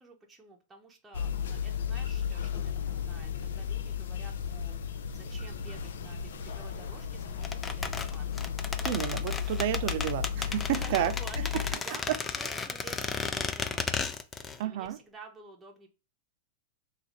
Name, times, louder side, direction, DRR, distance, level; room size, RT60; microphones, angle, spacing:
voice 1, 0.0-4.8 5.1-8.5 9.6-10.0 10.7-14.1 14.6-15.9, right 3 dB, 10° right, 0.8 m, -50 dB
sound 1, 1.1-11.7, left 8 dB, 80° left, 0.5 m, -34 dB
sound 2, 7.4-14.6 14.9-15.0, left 5 dB, 15° left, 0.3 m, -34 dB
voice 2, 8.8-11.1 11.5-11.6 12.1-12.2 14.6-15.0, right 12 dB, 55° right, 0.5 m, -30 dB
3.9 x 2.4 x 2.9 m
hypercardioid pair, 140°, 0 cm